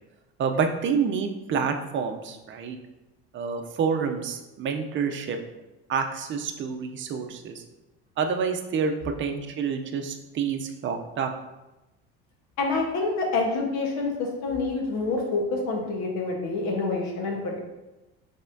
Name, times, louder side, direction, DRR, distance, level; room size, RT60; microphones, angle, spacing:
voice 1, 0.4-2.8 3.3-5.4 5.9-7.6 8.2-8.9 9.2-11.3, right 6 dB, 40° right, 5 dB, 0.6 m, -28 dB
voice 2, 12.6-17.6, left 3 dB, 70° left, 0 dB, 1.2 m, -27 dB
5.4 x 3.6 x 2.7 m, 1.0 s
cardioid pair, 110°, 29 cm